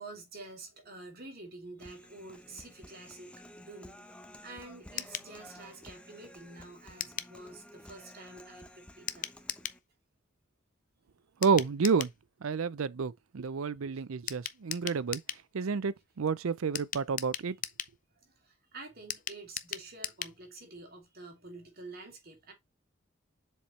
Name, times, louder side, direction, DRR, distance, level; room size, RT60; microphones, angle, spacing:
voice 1, 0.0-4.0 4.4-9.3 13.5-13.6 13.9-14.0 17.4-17.5 18.1-22.5, right 2 dB, 50° right, 2.7 m, -48 dB
Human voice, 1.8-9.8, left 1 dB, 5° left, 0.7 m, -53 dB
sound 1, 5.0-5.3 7.0-7.3 9.1-9.8 11.4-12.2 14.3-15.4 16.7-18.0 19.1-20.4 20.7-20.8 21.0-21.1, left 10 dB, 40° left, 0.5 m, -38 dB
voice 2, 11.4-12.1 12.4-15.2 15.5-17.6, right 5 dB, 90° right, 0.5 m, -30 dB
7.3 x 4.4 x 3.2 m
head